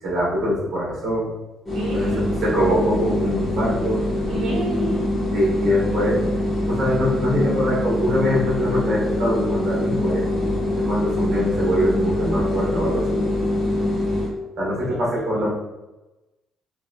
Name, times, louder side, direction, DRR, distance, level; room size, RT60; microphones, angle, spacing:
voice 1, 0.0-1.3 1.9-2.1 2.4-4.0 5.3-6.1 6.7-10.2 10.7-13.2 14.6-15.5, equal, 40° right, -7 dB, 1.2 m, -23 dB
sound 1, 1.6-14.3, left 1 dB, 20° left, 1.0 m, -24 dB
voice 2, 1.7-2.4 4.3-5.1 14.8-15.5, right 2 dB, 80° right, -2 dB, 0.4 m, -32 dB
3.0 x 3.0 x 2.3 m, 1.0 s
cardioid pair, 180°, 0 cm